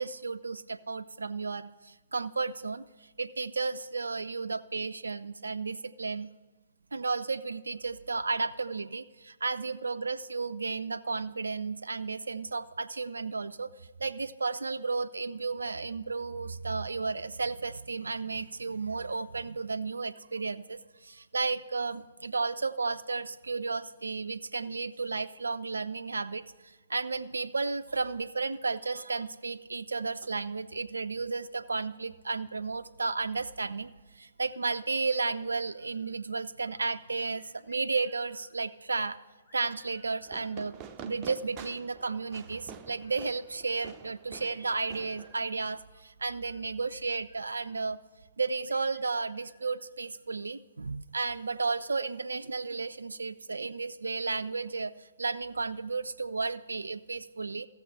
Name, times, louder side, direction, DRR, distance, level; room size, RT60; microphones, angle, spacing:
voice 1, 0.0-6.3 6.9-13.7 14.0-39.2 39.5-48.0 48.4-57.7, right 4 dB, 70° right, 10 dB, 0.3 m, -33 dB
sound 1, 35.0-36.3 36.6-38.7 39.4-42.6 42.9-43.6 44.4-47.8 48.6-50.5, equal, 25° left, 2.5 m, -63 dB
Fireworks, 40.3-45.8, right 7 dB, 20° right, 0.5 m, -48 dB
14.5 x 7.1 x 5.5 m, 1.2 s
figure-of-eight pair, 125°, 0 cm